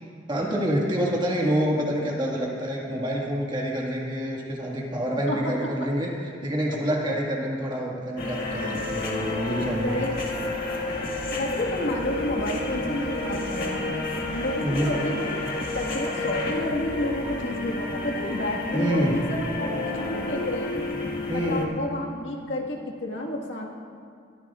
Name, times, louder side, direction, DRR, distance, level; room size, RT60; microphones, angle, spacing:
voice 1, 0.3-6.1 6.4-10.1 14.6-14.9 18.7-19.2 21.3-21.7, equal, 25° right, -2 dB, 1.8 m, -27 dB
voice 2, 5.3-5.7 9.8-10.2 11.4-13.9 14.3-15.3 15.7-20.7 21.3-23.7, left 1 dB, 70° left, -1 dB, 1.7 m, -30 dB
sound 1, 8.2-21.6, left 2 dB, 50° left, 1.8 m, -30 dB
21.5 x 13.5 x 2.5 m, 2.3 s
head